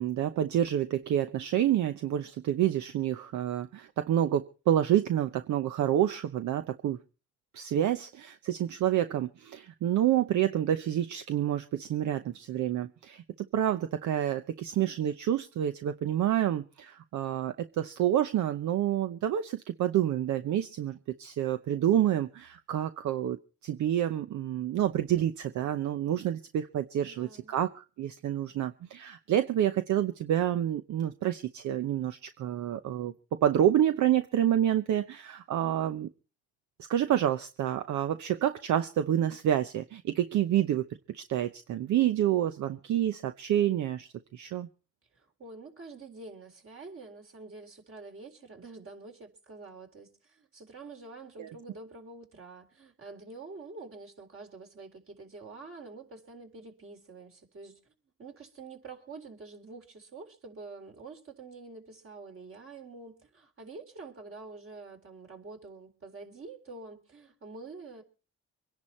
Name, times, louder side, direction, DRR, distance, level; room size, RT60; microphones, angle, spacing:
voice 1, 0.0-7.0 7.5-23.4 23.6-33.1 33.4-36.1 36.8-40.8 41.1-44.7 51.4-51.5, right 11 dB, 70° right, 0.8 m, -28 dB
voice 2, 27.0-27.5 45.1-57.9 58.2-68.0, right 3 dB, 45° right, 4.0 m, -47 dB
24.0 x 10.5 x 4.3 m
cardioid pair, 90°, 30 cm